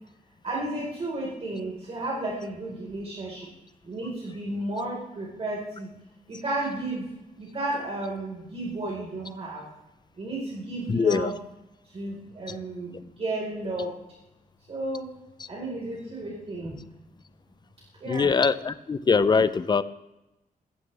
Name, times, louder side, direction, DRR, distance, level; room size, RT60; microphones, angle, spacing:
voice 1, 0.4-3.5 3.8-5.9 6.3-7.1 7.3-9.6 10.2-11.4 11.9-13.9 14.7-15.1 15.5-16.8 18.0-18.3, right 2 dB, 40° right, -4 dB, 4.7 m, -33 dB
voice 2, 10.9-11.3 18.1-19.8, left 5 dB, 30° left, 14 dB, 0.6 m, -22 dB
20.5 x 15.0 x 3.5 m, 0.94 s
wide cardioid pair, 155°, 15 cm